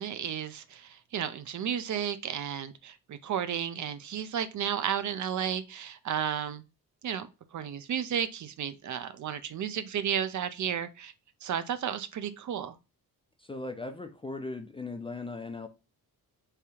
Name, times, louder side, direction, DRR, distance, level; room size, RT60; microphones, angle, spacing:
voice 1, 0.0-6.6 7.0-7.3 7.5-11.1 11.4-12.8, right 9 dB, 50° right, 0.6 m, -33 dB
voice 2, 13.4-15.7, left 3 dB, 15° left, 0.4 m, -38 dB
3.5 x 3.4 x 4.2 m
cardioid pair, 150°, 36 cm